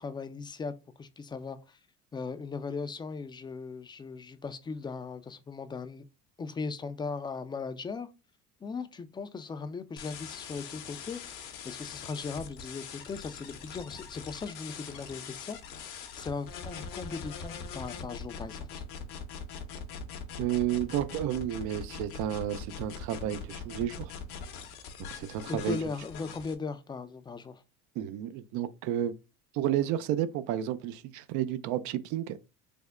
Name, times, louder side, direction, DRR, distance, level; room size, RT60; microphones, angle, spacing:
voice 1, 0.0-1.8 2.1-6.0 6.4-8.1 8.6-18.8 25.5-27.6, left 4 dB, 15° left, 0.4 m, -38 dB
sound 1, 10.0-26.5, left 6 dB, 75° left, 0.8 m, -42 dB
voice 2, 20.4-24.1 25.0-25.8 28.0-29.1 29.5-32.4, right 11 dB, 70° right, 0.5 m, -31 dB
3.4 x 2.1 x 3.5 m
supercardioid pair, 105°, 31 cm